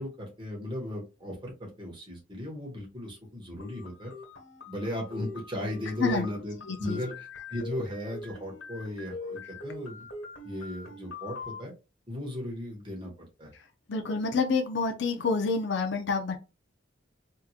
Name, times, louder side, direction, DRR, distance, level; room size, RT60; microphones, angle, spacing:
voice 1, 0.0-4.1 4.7-10.1 10.4-11.7 12.1-13.5, left 1 dB, 25° right, -1 dB, 1.4 m, -36 dB
sound 1, 3.6-11.6, left 3 dB, 90° left, 1.7 m, -43 dB
voice 2, 6.7-7.0 13.9-16.4, left 4 dB, 60° left, 4 dB, 0.6 m, -28 dB
3.6 x 2.9 x 2.4 m, 0.28 s
head